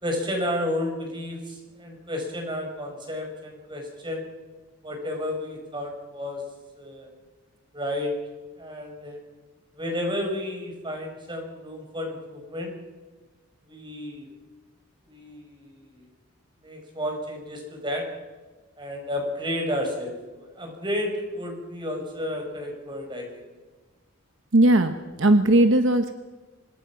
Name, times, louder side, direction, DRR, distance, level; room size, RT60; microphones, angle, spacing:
voice 1, 0.0-4.3 4.8-6.4 6.8-7.1 7.7-8.1 8.6-9.2 9.8-12.7 13.7-14.3 15.1-16.1 16.6-18.1 18.8-23.3, left 1 dB, 20° right, 3 dB, 5.2 m, -32 dB
voice 2, 24.5-26.1, right 1 dB, 60° right, 8 dB, 1.0 m, -18 dB
25.5 x 20.0 x 5.9 m, 1.3 s
head